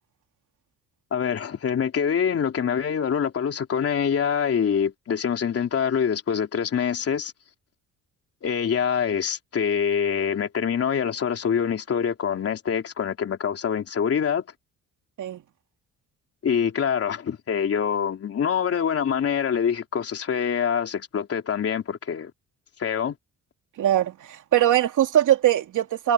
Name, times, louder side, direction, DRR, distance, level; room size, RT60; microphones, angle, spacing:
voice 1, 1.1-7.3 8.4-14.4 16.4-22.3 22.8-23.2, left 7 dB, 45° left, 3.5 m, -25 dB
voice 2, 23.8-26.1, right 11 dB, 70° right, 2.7 m, -21 dB
cardioid pair, 130°, 32 cm